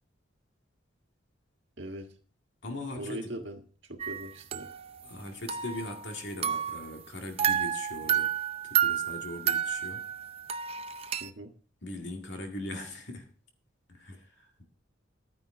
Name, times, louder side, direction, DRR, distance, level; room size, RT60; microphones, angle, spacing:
voice 1, 1.8-2.1 2.9-3.6 3.9-4.7 11.2-11.5, right 1 dB, 65° right, 1.7 m, -40 dB
voice 2, 2.6-3.3 5.0-8.3 8.6-10.0 11.8-13.3 13.9-14.6, left 2 dB, 70° left, 2.1 m, -40 dB
sound 1, 4.0-5.2 5.5-6.9 7.4-11.3, right 9 dB, 30° right, 0.6 m, -31 dB
12.0 x 9.7 x 3.7 m
head